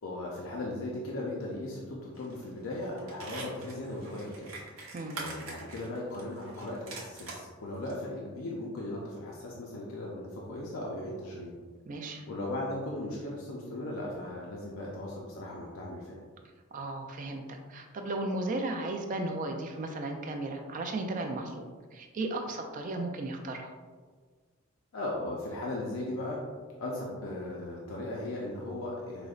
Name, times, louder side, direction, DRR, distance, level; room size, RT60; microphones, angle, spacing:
voice 1, 0.0-4.5 5.1-11.5 12.3-16.2 24.9-26.4 26.8-29.3, left 1 dB, 70° left, -3 dB, 0.5 m, -37 dB
sound 1, 2.2-2.4 2.7-7.4 7.9-8.0, right 3 dB, 70° right, 0.8 m, -44 dB
voice 2, 11.9-12.2 16.7-23.7, right 2 dB, 35° right, 4 dB, 0.3 m, -35 dB
4.9 x 2.0 x 2.4 m, 1.5 s
head